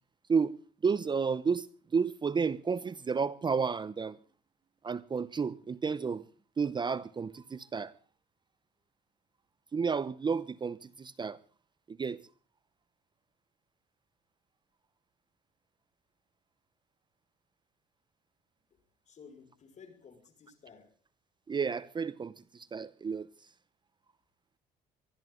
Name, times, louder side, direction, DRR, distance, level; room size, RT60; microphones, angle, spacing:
voice 1, 0.3-1.7 1.9-4.2 4.8-6.2 6.6-7.9 9.7-11.4 11.9-12.2 21.5-23.3, right 5 dB, 25° right, 0.8 m, -31 dB
voice 2, 19.1-21.0, left 6 dB, 45° left, 5.6 m, -55 dB
24.0 x 13.5 x 3.8 m
cardioid pair, 110°, 17 cm